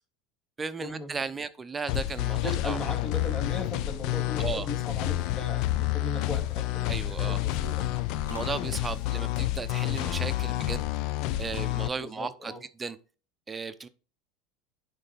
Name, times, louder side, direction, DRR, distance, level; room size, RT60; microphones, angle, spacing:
voice 1, 0.6-2.8 4.4-4.7 6.9-7.4 8.3-10.8 11.4-12.5 12.8-13.0 13.5-13.9, right 5 dB, 20° right, 0.6 m, -35 dB
sound 1, 1.9-11.9, left 15 dB, 60° left, 0.5 m, -29 dB
voice 2, 2.4-7.8 12.0-12.6, left 2 dB, 35° left, 2.8 m, -38 dB
sound 2, 5.6-11.4, left 3 dB, 90° left, 1.2 m, -52 dB
10.5 x 4.1 x 3.5 m
hypercardioid pair, 80°, 0 cm